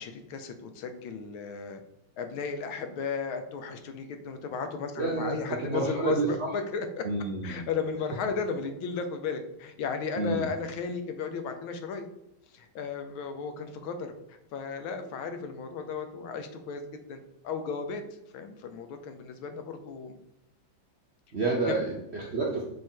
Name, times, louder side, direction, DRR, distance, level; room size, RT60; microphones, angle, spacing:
voice 1, 0.0-1.8 2.2-7.1 7.4-12.1 12.5-16.8 17.1-18.0 18.3-20.2 21.7-21.8, left 5 dB, 85° left, 7 dB, 1.6 m, -35 dB
voice 2, 5.0-6.5 7.0-7.6 10.2-10.5 21.3-22.6, right 3 dB, 60° right, -2 dB, 0.7 m, -29 dB
6.2 x 3.7 x 4.4 m, 0.88 s
omnidirectional pair, 2.2 m